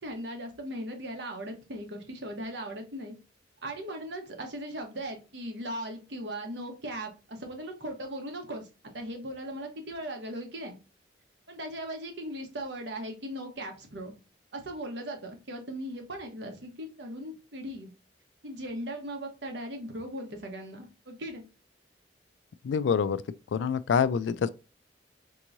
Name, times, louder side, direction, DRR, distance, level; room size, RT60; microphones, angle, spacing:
voice 1, 0.0-3.1 3.6-8.7 8.9-10.8 11.5-14.1 14.5-17.9 18.4-21.4, right 1 dB, 65° right, 1.1 m, -38 dB
voice 2, 22.6-23.2 23.5-24.5, left 6 dB, 75° left, 0.3 m, -26 dB
4.5 x 3.0 x 2.5 m
head